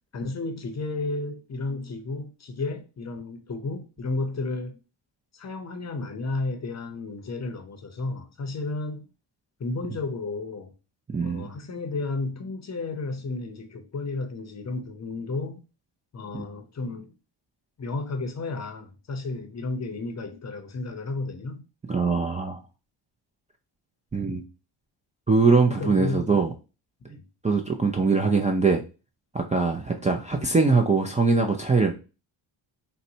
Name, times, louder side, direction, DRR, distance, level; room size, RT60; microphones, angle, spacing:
voice 1, 0.1-4.8 5.3-9.0 9.6-10.7 11.2-15.6 16.1-17.1 17.8-21.6 25.7-26.3 27.1-27.3, left 3 dB, 35° left, 0.7 m, -32 dB
voice 2, 11.1-11.5 16.3-16.4 21.9-22.6 24.1-24.4 25.3-26.5 27.4-28.8 29.3-31.9, right 4 dB, 15° right, 0.4 m, -22 dB
4.0 x 2.2 x 2.7 m
cardioid pair, 80°, 46 cm